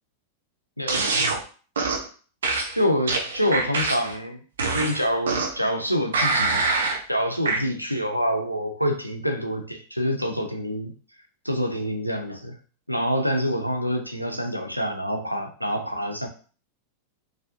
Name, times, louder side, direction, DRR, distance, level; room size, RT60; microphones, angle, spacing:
voice 1, 0.8-1.3 2.8-4.4 4.7-6.6 7.1-10.9 11.4-12.5 12.9-16.3, equal, 90° left, 5 dB, 0.5 m, -26 dB
sound 1, 0.9-1.4 1.8-2.1 2.4-4.2 4.6-5.7 6.1-7.0 7.5-7.6, right 3 dB, 65° right, 0.6 m, -24 dB
4.2 x 2.6 x 2.6 m, 0.39 s
figure-of-eight pair, 90°, 0 cm